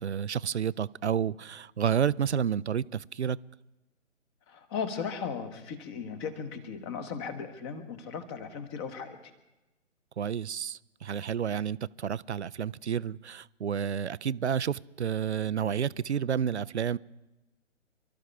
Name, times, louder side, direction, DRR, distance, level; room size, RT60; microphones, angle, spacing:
voice 1, 0.0-3.4 10.2-17.0, right 8 dB, 65° right, 0.5 m, -30 dB
voice 2, 4.5-9.2, left 6 dB, 20° left, 1.3 m, -37 dB
28.0 x 13.0 x 3.5 m
figure-of-eight pair, 135°, 38 cm